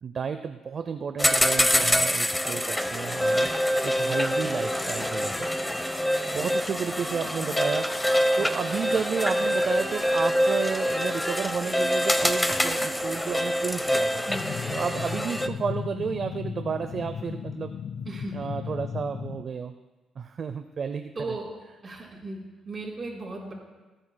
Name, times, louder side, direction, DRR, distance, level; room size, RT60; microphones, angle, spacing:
voice 1, 0.0-3.5 3.8-5.3 5.9-6.0 6.3-7.9 8.4-14.3 14.7-17.7 18.3-19.8 20.2-21.4, right 6 dB, 50° right, 9 dB, 0.5 m, -32 dB
sound 1, 1.2-15.5, equal, 10° left, 0.7 m, -25 dB
sound 2, 14.3-19.4, left 7 dB, 60° left, 0.4 m, -35 dB
voice 2, 21.1-21.5 21.8-22.4 22.7-23.5, right 2 dB, 35° right, -2 dB, 4.0 m, -36 dB
26.0 x 8.9 x 2.2 m, 1.2 s
cardioid pair, 90°, 0 cm